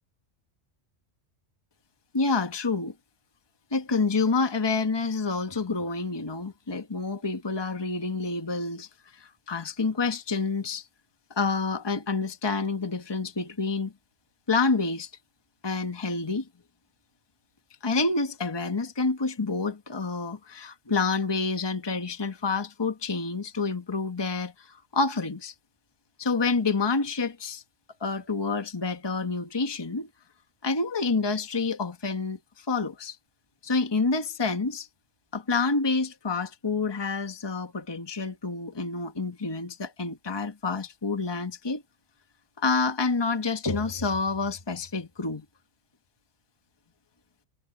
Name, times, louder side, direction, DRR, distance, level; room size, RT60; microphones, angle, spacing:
voice 1, 2.1-2.9 3.7-10.9 11.3-13.9 14.5-15.1 15.6-16.5 17.8-25.5 26.2-27.6 28.0-30.1 30.6-33.2 33.6-34.9 35.3-41.8 42.6-45.4, left 4 dB, 20° left, 1.3 m, -28 dB
omnidirectional pair, 1.3 m